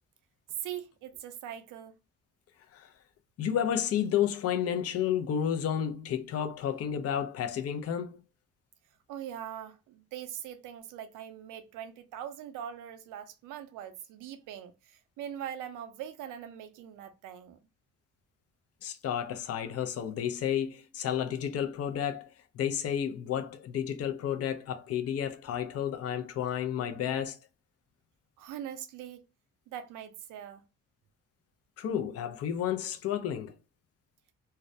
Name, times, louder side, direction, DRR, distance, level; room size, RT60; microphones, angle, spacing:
voice 1, 0.6-1.9 9.1-17.6 28.4-29.2 29.7-30.6, right 10 dB, 90° right, 0.5 m, -42 dB
voice 2, 3.4-8.2 18.8-22.3 22.5-27.4 31.8-33.5, left 9 dB, 55° left, 0.5 m, -31 dB
2.3 x 2.1 x 2.6 m
cardioid pair, 90°, 30 cm